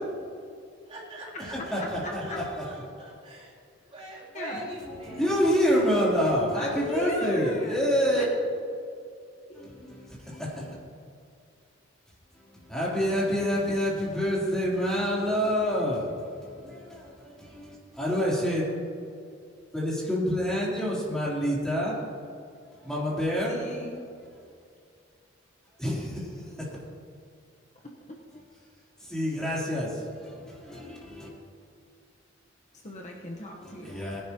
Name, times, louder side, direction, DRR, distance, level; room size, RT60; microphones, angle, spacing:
voice 1, 0.9-2.4 2.7-3.5 3.9-5.5, right 1 dB, 30° right, 3.1 m, -42 dB
voice 2, 1.4-2.8 5.0-8.2 9.5-10.7 12.5-18.6 19.7-21.9 22.8-23.5 25.8-26.5 29.0-31.3 33.5-34.2, equal, 5° left, 3.3 m, -28 dB
voice 3, 4.3-4.7 6.5-7.8 8.1-8.2 9.5-9.7 23.5-24.0 28.1-28.2 32.8-34.0, left 1 dB, 35° left, 1.1 m, -35 dB
20.0 x 11.0 x 2.9 m
head